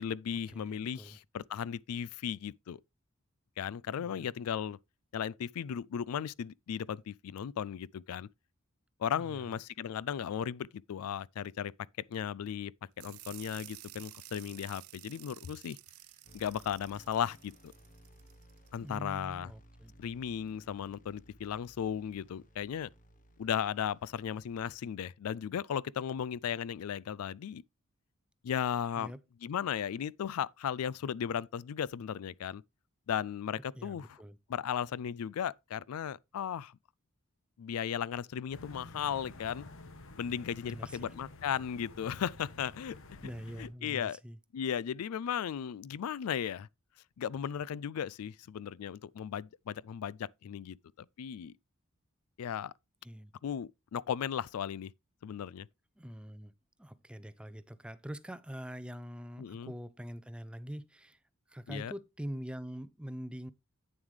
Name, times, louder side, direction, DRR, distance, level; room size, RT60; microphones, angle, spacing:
voice 1, 0.0-2.8 3.6-4.8 5.1-8.3 9.0-11.7 12.1-12.7 13.0-15.8 16.3-17.7 18.7-19.5 20.0-22.9 23.4-27.6 28.4-29.1 29.4-32.6 33.1-34.2 34.5-36.8 37.6-39.7 40.2-43.3 43.6-44.2 44.5-46.7 47.2-51.5 52.4-52.7 53.4-54.9 55.2-55.7 59.4-59.7 61.7-61.9, left 8 dB, 80° left, 0.4 m, -36 dB
voice 2, 0.5-1.2 4.0-4.3 9.1-9.5 18.8-19.9 29.0-29.2 33.7-34.4 40.6-41.1 43.2-44.4 53.0-53.3 56.0-56.5 56.8-61.2 61.5-63.5, equal, 5° right, 0.5 m, -44 dB
sound 1, 13.0-18.8, right 17 dB, 80° right, 0.6 m, -52 dB
sound 2, 16.2-24.8, equal, 40° left, 1.1 m, -60 dB
sound 3, 38.5-43.7, left 2 dB, 65° left, 1.2 m, -50 dB
9.0 x 7.1 x 3.2 m
head